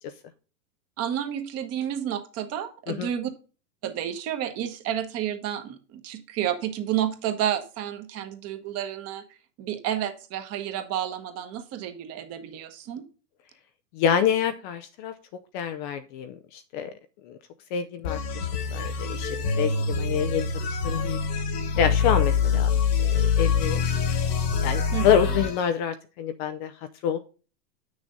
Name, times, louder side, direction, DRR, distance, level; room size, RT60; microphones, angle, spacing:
voice 1, 1.0-3.3 3.8-9.2 9.6-13.0 24.9-25.1, right 10 dB, 30° right, 8 dB, 1.3 m, -30 dB
voice 2, 13.9-15.1 15.5-16.9 17.2-17.4 17.7-20.5 20.8-21.2 21.8-22.7 23.1-23.8 24.6-26.7 27.0-27.2, left 8 dB, 30° left, 9 dB, 0.6 m, -27 dB
sound 1, 18.0-25.6, left 5 dB, 65° left, 2.0 m, -25 dB
8.6 x 6.3 x 3.8 m, 0.35 s
hypercardioid pair, 120°, 49 cm